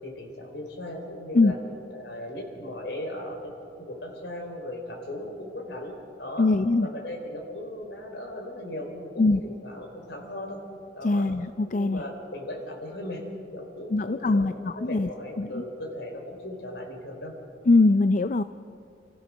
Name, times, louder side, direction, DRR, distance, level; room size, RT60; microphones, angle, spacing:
voice 1, 0.0-1.6 1.9-3.5 3.8-5.9 6.2-6.5 6.8-10.6 11.0-11.3 11.7-13.2 13.5-17.3, left 1 dB, 70° left, 1 dB, 4.5 m, -37 dB
voice 2, 6.4-6.9 9.2-9.4 11.0-12.0 13.9-15.1 15.4-15.6 17.7-18.4, left 3 dB, 45° left, 11 dB, 0.4 m, -22 dB
29.0 x 15.0 x 6.3 m, 2.5 s
head